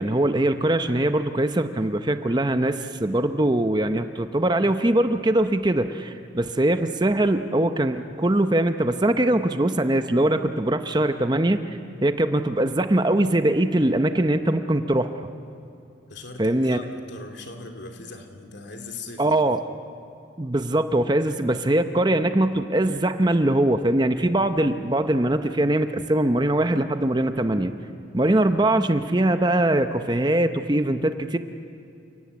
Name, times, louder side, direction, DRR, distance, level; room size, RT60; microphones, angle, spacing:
voice 1, 0.0-11.6 12.0-15.2 16.4-16.8 19.2-19.6 20.4-27.7 28.1-31.4, right 1 dB, 20° right, 9 dB, 0.7 m, -22 dB
voice 2, 16.1-19.4, left 2 dB, 65° left, 4 dB, 2.7 m, -39 dB
29.5 x 18.0 x 8.3 m, 2.7 s
head